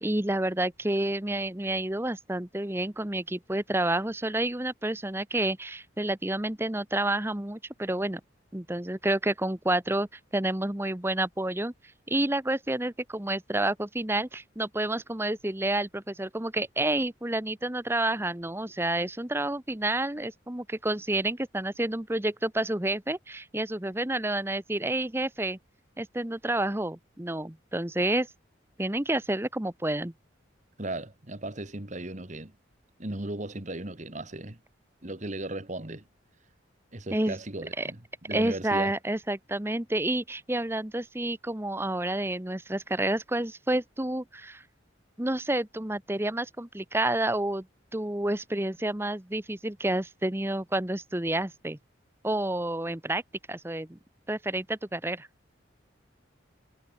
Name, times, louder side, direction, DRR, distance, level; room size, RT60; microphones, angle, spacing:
voice 1, 0.0-8.2 8.5-10.1 10.3-11.7 12.1-25.6 26.0-28.3 28.8-30.1 37.1-37.4 37.8-37.9 38.3-44.6 45.2-47.7 47.9-51.8 52.2-53.2 53.5-54.0 54.3-55.3, right 1 dB, 10° right, 0.9 m, -29 dB
voice 2, 30.8-32.5 33.0-34.6 35.0-36.1 36.9-39.0, right 1 dB, 35° right, 1.8 m, -36 dB
head